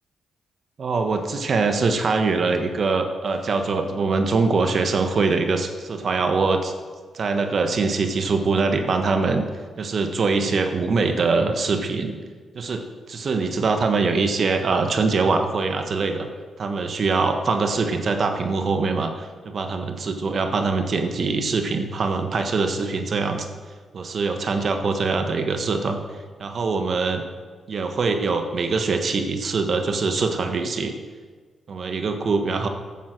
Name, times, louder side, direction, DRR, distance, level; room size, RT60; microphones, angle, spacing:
voice 1, 0.8-6.7 7.1-9.4 9.8-12.2 12.5-16.3 16.6-23.5 23.9-26.0 26.4-27.2 27.7-30.9 31.7-32.7, right 4 dB, 60° right, 6 dB, 1.5 m, -23 dB
14.0 x 7.4 x 6.2 m, 1.5 s
supercardioid pair, 60°, 0 cm